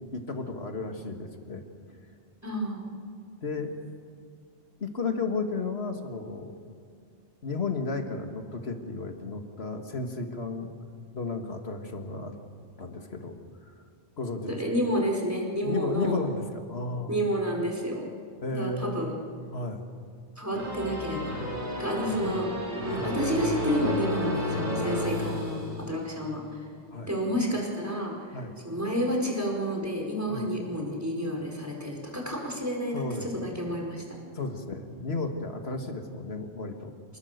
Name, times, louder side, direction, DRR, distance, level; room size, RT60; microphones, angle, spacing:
voice 1, 0.0-1.6 1.9-2.0 3.4-4.0 4.8-6.5 7.4-10.7 11.1-12.4 12.8-13.4 13.7-13.8 14.2-14.6 15.6-17.2 18.4-19.1 19.5-19.9 22.2-22.4 22.9-23.2 26.9-27.1 28.3-28.6 30.3-30.5 32.9-33.5 34.3-36.9, left 3 dB, 80° left, 5 dB, 2.2 m, -33 dB
voice 2, 2.4-2.8 14.5-16.2 17.1-18.1 18.5-19.1 20.4-21.4 21.8-22.5 22.8-26.6 27.1-28.1 28.6-34.0, equal, 15° right, -1 dB, 4.7 m, -30 dB
sound 1, 20.5-26.2, left 1 dB, 55° right, 4.9 m, -31 dB
28.0 x 20.0 x 6.8 m, 2.3 s
omnidirectional pair, 1.0 m